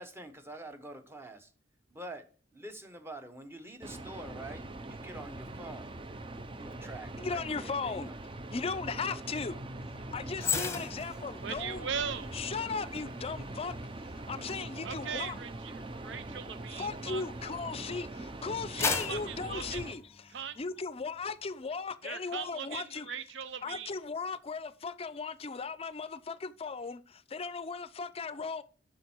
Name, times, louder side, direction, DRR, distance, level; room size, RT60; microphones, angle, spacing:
voice 1, 0.0-1.4 1.9-2.2 2.5-6.0 6.5-8.1, right 1 dB, 15° right, 1.0 m, -46 dB
sound 1, 3.8-19.9, right 2 dB, 30° right, 0.6 m, -42 dB
voice 2, 7.2-8.1 8.5-9.6 9.9-11.9 12.3-15.4 16.7-23.1 23.6-28.6, left 4 dB, 30° left, 0.5 m, -37 dB
sound 2, 10.4-17.8 18.3-20.6 21.0-21.2, left 5 dB, 15° left, 0.9 m, -39 dB
voice 3, 11.4-12.3 14.8-17.2 18.7-19.8 20.3-20.6 22.0-23.9, right 7 dB, 80° right, 0.6 m, -39 dB
7.7 x 6.3 x 4.4 m
head